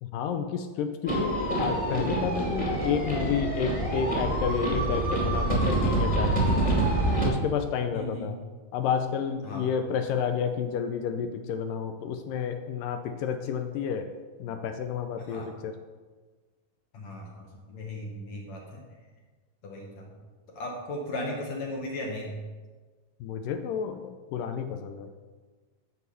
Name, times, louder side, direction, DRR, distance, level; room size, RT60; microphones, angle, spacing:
voice 1, 0.0-6.8 7.2-8.4 8.7-14.1 14.4-15.7 23.2-25.1, left 7 dB, 80° left, 7 dB, 2.1 m, -30 dB
sound 1, 1.1-7.3, right 1 dB, 15° left, 1.5 m, -26 dB
voice 2, 7.9-8.4 9.4-9.7 15.2-15.5 16.9-18.8 19.6-20.1 20.5-22.4, left 1 dB, 60° left, 0 dB, 2.1 m, -36 dB
14.0 x 4.7 x 6.8 m, 1.4 s
omnidirectional pair, 4.2 m